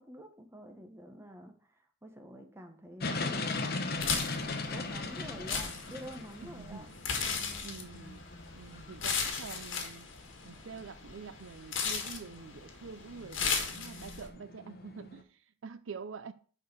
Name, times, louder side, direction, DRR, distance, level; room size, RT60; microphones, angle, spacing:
voice 1, 0.0-3.5 4.7-6.9, equal, 15° right, 1.2 m, -48 dB
sound 1, 3.0-15.2, left 3 dB, 50° left, 1.0 m, -40 dB
sound 2, 3.5-9.9, equal, 50° right, 2.4 m, -58 dB
sound 3, 3.9-14.3, left 5 dB, 70° left, 1.6 m, -36 dB
voice 2, 6.4-6.9 7.6-8.2 8.5-10.1 10.4-16.3, right 5 dB, 75° right, 0.5 m, -46 dB
6.5 x 5.0 x 6.9 m
head